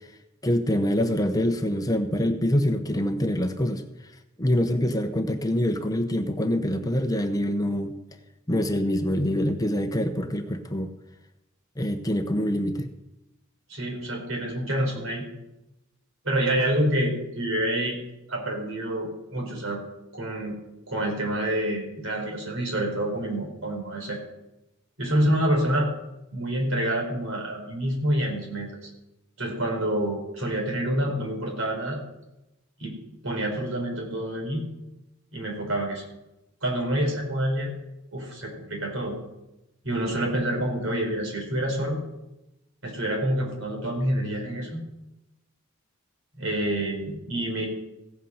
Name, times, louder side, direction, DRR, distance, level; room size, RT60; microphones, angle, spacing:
voice 1, 0.4-3.8 4.4-7.9 8.5-10.9 11.8-12.9, left 1 dB, 15° left, 6 dB, 0.8 m, -25 dB
voice 2, 13.7-15.2 16.2-18.0 18.3-19.8 20.1-20.6 20.9-24.2 25.0-25.9 26.3-28.9 29.4-32.0 32.8-33.0 33.2-34.6 35.3-36.0 36.6-37.7 38.1-39.2 39.8-42.0 42.8-44.8 46.4-47.7, right 1 dB, 70° right, 0 dB, 4.5 m, -27 dB
16.5 x 8.2 x 5.7 m, 0.93 s
head